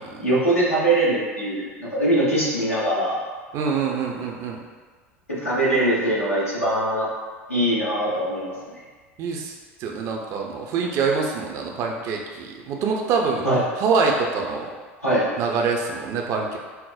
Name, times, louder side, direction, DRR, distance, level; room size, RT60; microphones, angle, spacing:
voice 1, 0.2-3.2 5.3-7.1 7.5-8.6 13.4-13.6 15.0-15.3, right 1 dB, 90° left, -9 dB, 1.1 m, -22 dB
voice 2, 3.5-4.6 9.2-9.5 9.8-13.5 13.8-14.7 15.4-16.6, right 5 dB, 45° right, 1 dB, 0.5 m, -25 dB
5.6 x 2.0 x 2.3 m, 1.4 s
figure-of-eight pair, 75°, 7 cm